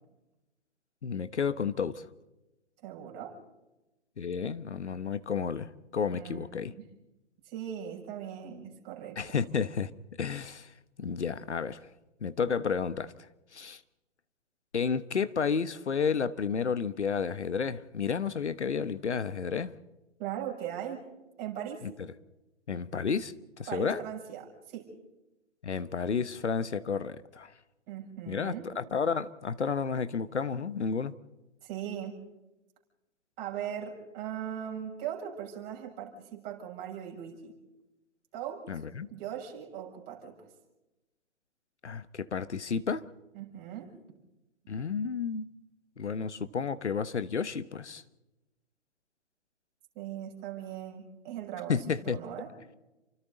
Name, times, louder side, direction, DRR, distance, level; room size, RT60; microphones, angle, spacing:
voice 1, 1.0-2.0 4.2-6.7 9.2-9.9 10.2-10.7 11.0-11.8 12.2-13.1 13.5-13.8 14.7-19.7 22.7-23.3 23.7-24.0 25.6-27.5 28.3-31.1 38.7-39.1 41.8-43.1 44.7-45.5 46.0-48.0 51.7-52.2, left 6 dB, 70° left, 1.3 m, -31 dB
voice 2, 2.8-3.4 6.1-6.8 7.4-9.2 20.2-21.0 21.4-21.8 23.7-24.9 27.9-28.7 31.6-32.2 33.4-37.5 38.3-38.7 39.1-40.4 43.3-43.9 50.0-52.5, right 10 dB, 25° right, 6.9 m, -39 dB
29.5 x 25.0 x 4.0 m
figure-of-eight pair, 125°, 35 cm